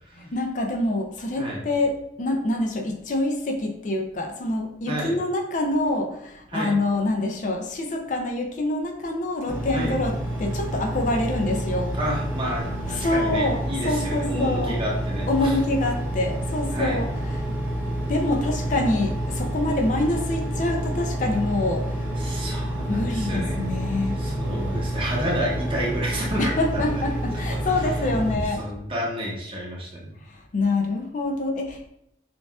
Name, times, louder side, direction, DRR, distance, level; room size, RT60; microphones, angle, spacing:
voice 1, 0.2-12.0 12.9-14.8 15.3-17.4 18.1-22.1 22.8-24.2 26.4-28.7 30.3-31.9, left 2 dB, 45° left, 3 dB, 0.4 m, -26 dB
Engine, 9.5-28.3, right 1 dB, 10° right, 0.8 m, -28 dB
voice 2, 12.0-15.5 16.7-17.0 22.2-23.6 24.2-26.9 28.6-30.1, equal, 30° right, -4 dB, 1.0 m, -30 dB
6.1 x 2.4 x 2.3 m, 0.78 s
head